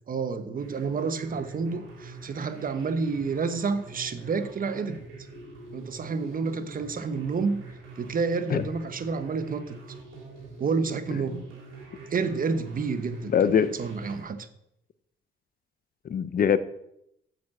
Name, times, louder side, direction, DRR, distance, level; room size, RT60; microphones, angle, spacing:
voice 1, 0.1-5.0 5.7-7.6 8.0-9.8 10.6-11.4 12.1-14.4, right 4 dB, 45° right, 1.1 m, -29 dB
sound 1, 0.6-14.2, right 3 dB, 90° right, 3.2 m, -45 dB
voice 2, 13.3-13.8 16.0-16.6, left 7 dB, 50° left, 0.7 m, -22 dB
7.9 x 7.0 x 7.5 m
cardioid pair, 90°, 20 cm